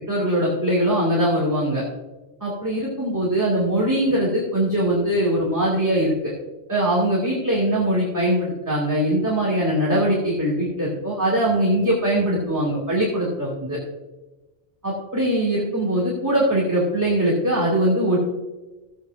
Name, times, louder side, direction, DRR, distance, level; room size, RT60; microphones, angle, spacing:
voice 1, 0.1-1.8 2.4-6.3 6.7-13.8 14.8-18.2, right 1 dB, 15° right, -6 dB, 2.4 m, -21 dB
15.0 x 8.4 x 2.6 m, 1.1 s
omnidirectional pair, 1.2 m